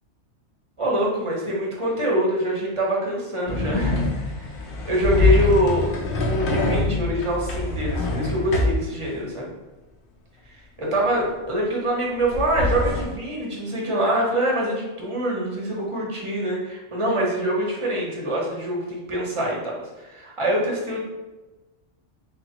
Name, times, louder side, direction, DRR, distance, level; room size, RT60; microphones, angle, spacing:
voice 1, 0.8-5.9 6.2-9.5 10.5-21.0, right 1 dB, 25° right, -3 dB, 0.9 m, -25 dB
sound 1, 3.5-8.8 12.2-13.0, left 2 dB, 55° left, 0.7 m, -24 dB
3.9 x 3.1 x 2.9 m, 1.1 s
omnidirectional pair, 1.3 m